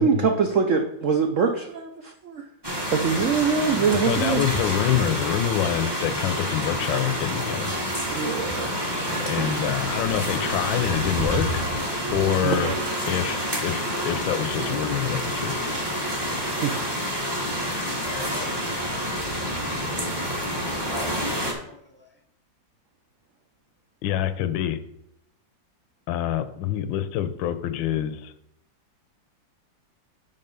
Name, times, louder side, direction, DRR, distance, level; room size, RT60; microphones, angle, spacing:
voice 1, 0.0-2.5 2.9-4.4 8.0-9.5 12.4-13.0 16.6-16.7, right 6 dB, 75° right, 4 dB, 0.7 m, -24 dB
sound 1, 2.6-21.5, equal, 15° right, 1.2 m, -28 dB
voice 2, 4.0-7.7 9.3-11.7 12.1-12.7 13.1-15.5 24.0-24.8 26.1-28.3, left 10 dB, 80° left, 12 dB, 1.3 m, -26 dB
voice 3, 17.8-20.4 21.0-22.2, left 1 dB, 5° left, 1 dB, 1.0 m, -44 dB
5.6 x 5.5 x 5.3 m, 0.78 s
omnidirectional pair, 2.1 m